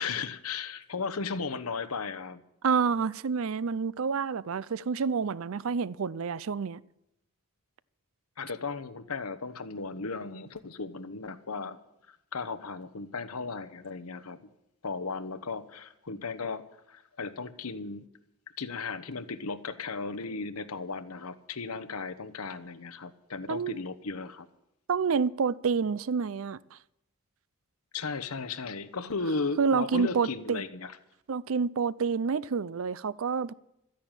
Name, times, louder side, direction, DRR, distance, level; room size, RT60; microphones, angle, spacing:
voice 1, 0.0-2.4 8.4-11.8 12.3-14.4 14.8-18.1 18.6-24.5 27.9-30.9, left 4 dB, 75° left, 1.0 m, -36 dB
voice 2, 2.6-6.8 23.5-23.8 24.9-26.8 29.6-30.6 31.3-33.5, right 5 dB, 65° right, 0.5 m, -28 dB
13.0 x 10.5 x 9.0 m
head